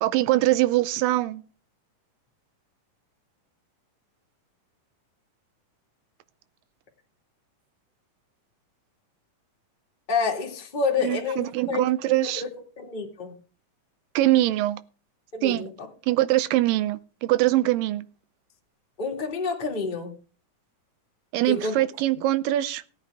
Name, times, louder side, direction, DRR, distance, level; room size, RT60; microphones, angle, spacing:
voice 1, 0.0-1.4 11.0-12.4 14.2-14.8 15.4-15.7 16.1-18.0 21.3-22.8, right 16 dB, 90° right, 2.4 m, -23 dB
voice 2, 10.1-11.8 12.2-12.5 12.8-13.3 15.3-15.7 19.0-20.1 21.5-21.8, left 4 dB, 20° left, 1.5 m, -28 dB
17.0 x 8.7 x 3.4 m
omnidirectional pair, 3.8 m